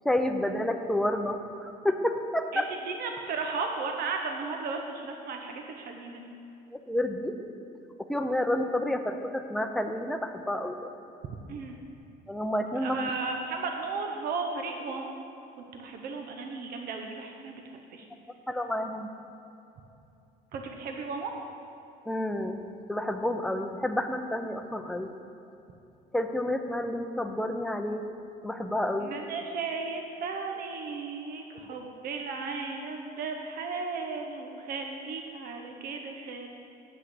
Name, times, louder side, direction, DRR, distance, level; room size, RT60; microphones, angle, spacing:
voice 1, 0.0-1.4 1.6-2.7 6.9-7.3 8.1-10.8 12.3-13.0 18.5-19.1 22.1-22.6 22.9-25.1 26.1-28.0 28.4-29.1, left 1 dB, 5° left, 5 dB, 0.6 m, -29 dB
voice 2, 2.5-6.3 11.5-11.8 12.8-15.1 15.6-17.6 17.9-18.0 20.5-21.3 29.0-36.5, right 4 dB, 65° right, 3 dB, 0.8 m, -35 dB
7.9 x 5.6 x 6.4 m, 2.8 s
cardioid pair, 110°, 17 cm